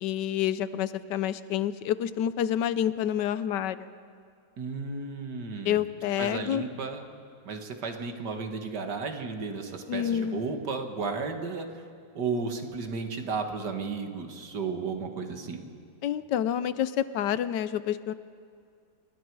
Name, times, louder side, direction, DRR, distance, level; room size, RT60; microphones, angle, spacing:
voice 1, 0.0-3.9 5.6-6.6 9.9-10.4 16.0-18.1, left 10 dB, 80° left, 14 dB, 1.3 m, -28 dB
voice 2, 4.6-5.8 6.2-7.0 7.5-11.8 12.1-15.6, right 4 dB, 75° right, 5 dB, 2.2 m, -33 dB
28.0 x 21.5 x 4.7 m, 2.3 s
omnidirectional pair, 1.8 m